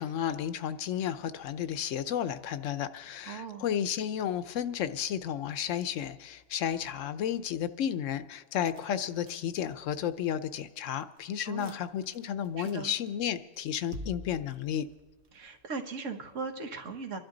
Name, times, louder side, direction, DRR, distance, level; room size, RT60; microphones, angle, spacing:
voice 1, 0.0-14.9, left 9 dB, 85° left, 13 dB, 1.0 m, -32 dB
voice 2, 3.3-3.7 11.4-11.8 12.6-12.9 15.3-17.2, right 4 dB, 85° right, 5 dB, 1.5 m, -38 dB
sound 1, 8.7-10.2 10.6-10.7 11.0-11.7 12.0-13.3 13.5-15.6, left 1 dB, 60° right, 1.4 m, -46 dB
27.5 x 11.5 x 3.9 m, 1.2 s
omnidirectional pair, 1.3 m